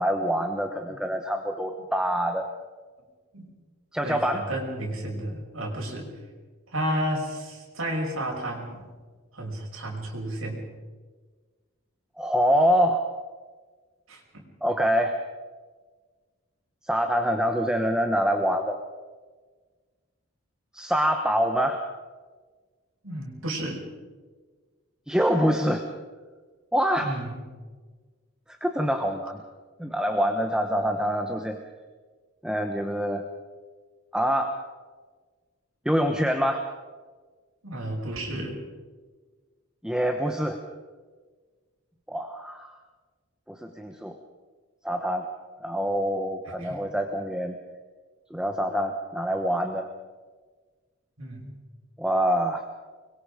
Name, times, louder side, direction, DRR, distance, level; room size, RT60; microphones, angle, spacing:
voice 1, 0.0-2.5 3.9-4.4 12.2-13.1 14.6-15.2 16.8-18.8 20.7-21.9 25.1-25.8 26.7-27.1 28.6-29.4 29.8-31.6 32.4-33.2 34.1-34.6 35.8-36.7 39.8-40.6 42.1-42.7 43.5-44.2 44.8-45.2 45.6-47.5 48.3-49.9 52.0-52.6, equal, 5° right, 5 dB, 1.1 m, -25 dB
voice 2, 4.0-6.1 6.7-8.8 9.3-10.6 14.1-14.4 23.0-23.8 27.0-27.4 37.6-38.6 46.5-46.8 51.2-51.5, right 1 dB, 85° right, -1 dB, 5.9 m, -32 dB
25.5 x 22.5 x 5.1 m, 1.4 s
head